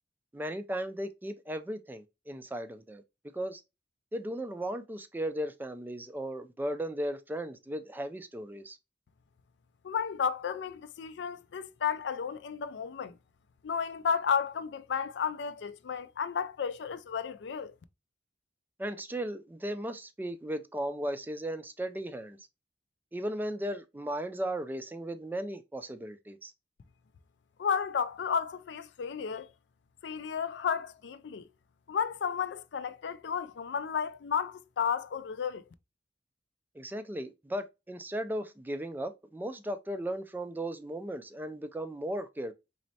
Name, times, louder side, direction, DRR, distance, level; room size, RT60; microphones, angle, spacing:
voice 1, 0.3-3.0 3.3-3.6 4.1-8.8 18.8-22.4 23.1-26.5 36.8-42.5, right 1 dB, 10° right, 0.3 m, -36 dB
voice 2, 9.8-13.2 13.6-17.7 27.6-29.5 30.0-31.5 31.9-35.6, left 7 dB, 70° left, 0.4 m, -32 dB
4.2 x 3.1 x 2.7 m
head